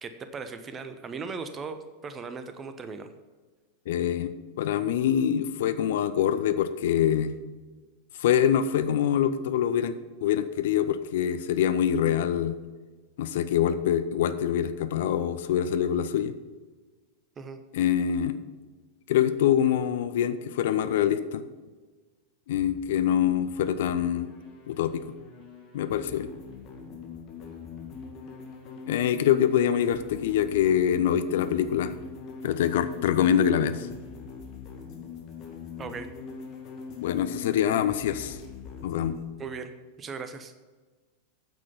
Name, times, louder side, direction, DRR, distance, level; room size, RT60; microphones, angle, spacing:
voice 1, 0.0-3.1 17.4-17.6 35.8-36.1 39.4-40.5, right 5 dB, 20° right, 9 dB, 0.9 m, -38 dB
voice 2, 3.9-7.3 8.2-10.0 10.2-12.5 13.2-16.3 17.7-18.4 19.1-21.4 22.5-24.3 24.7-25.0 25.7-26.3 28.9-32.0 32.4-33.9 37.0-38.4 38.8-39.1, left 9 dB, 55° left, 12 dB, 0.5 m, -25 dB
sound 1, 22.6-39.3, left 6 dB, 35° left, 2.1 m, -42 dB
9.2 x 7.6 x 5.7 m, 1.4 s
figure-of-eight pair, 90°, 0 cm